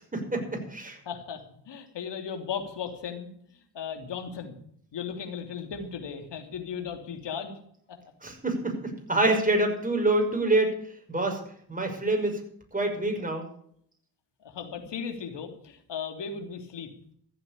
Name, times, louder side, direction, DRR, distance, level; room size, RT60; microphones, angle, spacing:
voice 1, 0.1-1.0 8.2-10.7 11.1-11.4 11.7-12.3 12.7-13.5, right 2 dB, 20° right, 2 dB, 5.9 m, -26 dB
voice 2, 1.0-3.3 3.7-4.6 4.9-7.6 14.4-16.9, left 7 dB, 65° left, 6 dB, 3.0 m, -36 dB
14.5 x 8.2 x 8.5 m, 0.66 s
supercardioid pair, 60°, 44 cm